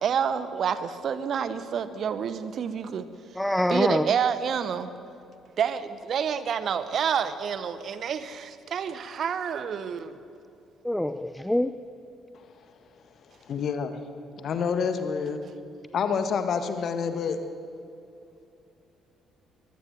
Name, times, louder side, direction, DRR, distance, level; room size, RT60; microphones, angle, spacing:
voice 1, 0.0-3.1 3.7-4.9 5.6-10.2, right 7 dB, 50° right, 13 dB, 1.1 m, -28 dB
voice 2, 3.4-4.1 10.8-11.7, left 1 dB, 5° left, 12 dB, 0.6 m, -25 dB
voice 3, 13.5-13.9 14.4-15.4 15.9-17.4, left 6 dB, 50° left, 8 dB, 1.6 m, -27 dB
22.5 x 19.5 x 6.7 m, 2.6 s
figure-of-eight pair, 45°, 0 cm